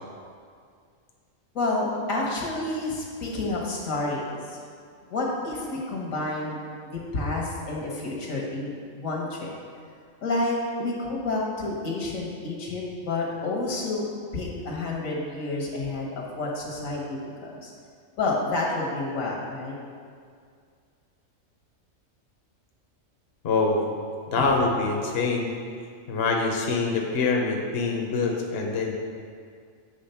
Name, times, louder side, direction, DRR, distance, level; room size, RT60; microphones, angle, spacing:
voice 1, 1.5-4.6 5.1-6.6 6.9-8.7 9.0-9.5 10.2-14.0 14.3-17.7 18.2-19.7 24.4-24.5, left 2 dB, 80° left, -2 dB, 1.6 m, -29 dB
voice 2, 23.4-23.8 24.3-25.5 26.1-29.0, left 3 dB, 55° left, 0 dB, 1.0 m, -25 dB
8.0 x 3.6 x 5.6 m, 2.2 s
omnidirectional pair, 1.4 m